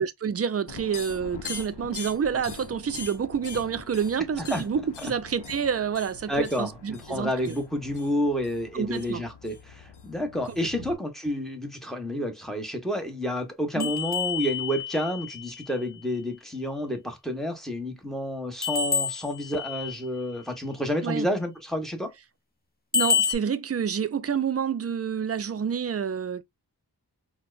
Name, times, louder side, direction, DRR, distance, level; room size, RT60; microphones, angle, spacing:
voice 1, 0.0-7.5 8.7-9.2 13.8-13.9 21.0-21.3 22.9-26.4, right 7 dB, 40° right, 0.4 m, -28 dB
sound 1, 0.7-10.9, left 5 dB, 75° left, 0.7 m, -42 dB
voice 2, 6.3-22.1, equal, ahead, 1.0 m, -30 dB
sound 2, 13.8-15.7 18.6-20.0 22.9-23.4, left 6 dB, 25° left, 0.8 m, -28 dB
4.3 x 2.2 x 2.4 m
wide cardioid pair, 75°, 40 cm